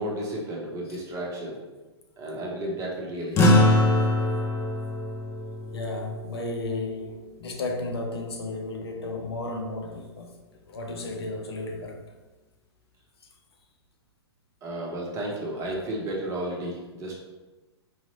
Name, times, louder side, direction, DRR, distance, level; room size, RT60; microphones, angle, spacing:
voice 1, 0.0-1.7 2.2-3.6 14.6-17.2, right 1 dB, 20° right, -2 dB, 0.8 m, -33 dB
sound 1, 3.4-8.0, left 1 dB, 20° left, 0.5 m, -24 dB
voice 2, 5.7-10.4 10.7-12.0, left 2 dB, 65° left, 3 dB, 0.6 m, -33 dB
4.8 x 2.9 x 2.7 m, 1.2 s
figure-of-eight pair, 110°, 14 cm